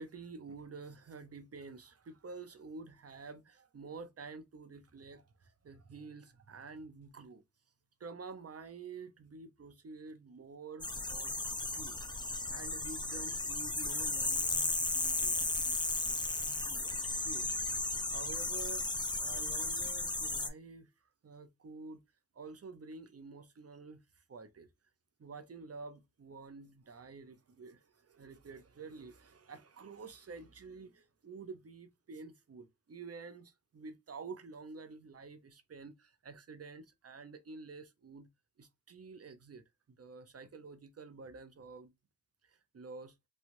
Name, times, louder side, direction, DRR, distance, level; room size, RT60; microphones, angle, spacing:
voice 1, 0.0-7.4 8.0-11.3 11.7-12.0 12.5-20.9 21.2-22.0 22.3-24.7 25.2-38.3 38.6-39.6 40.0-41.9 42.4-43.1, right 4 dB, 40° right, 0.6 m, -49 dB
sound 1, 10.8-20.5, left 2 dB, 10° left, 0.5 m, -35 dB
3.1 x 2.3 x 2.5 m
cardioid pair, 45°, 40 cm